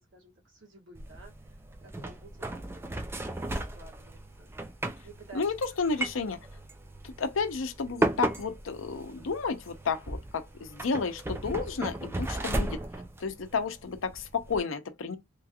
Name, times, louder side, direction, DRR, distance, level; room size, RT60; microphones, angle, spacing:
voice 1, 0.0-4.5 5.0-5.5 5.9-6.0 12.3-12.8, right 3 dB, 70° right, 1.4 m, -53 dB
sound 1, 1.0-14.6, right 1 dB, 10° right, 0.4 m, -36 dB
voice 2, 5.3-6.4 7.2-12.7 13.2-15.2, left 4 dB, 80° left, 0.6 m, -31 dB
3.0 x 2.4 x 2.7 m
head